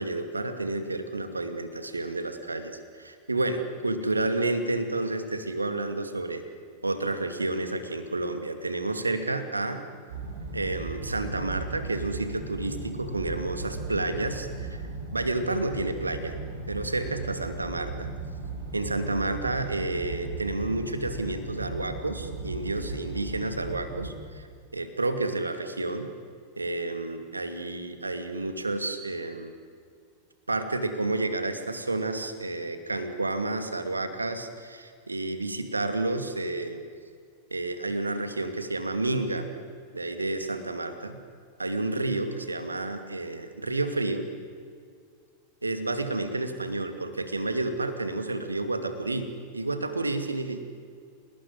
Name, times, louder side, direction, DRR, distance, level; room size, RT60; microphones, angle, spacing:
voice 1, 0.0-6.4 6.8-9.8 10.5-14.8 15.1-16.4 16.7-18.1 18.7-24.5 24.7-26.1 26.6-29.5 30.5-36.8 37.5-39.5 39.9-41.2 41.6-44.3 45.6-50.6, right 2 dB, 80° right, 8 dB, 2.5 m, -30 dB
sound 1, 10.1-24.1, right 3 dB, 60° right, 6.2 m, -37 dB
29.0 x 19.5 x 9.7 m, 2.2 s
figure-of-eight pair, 90°, 0 cm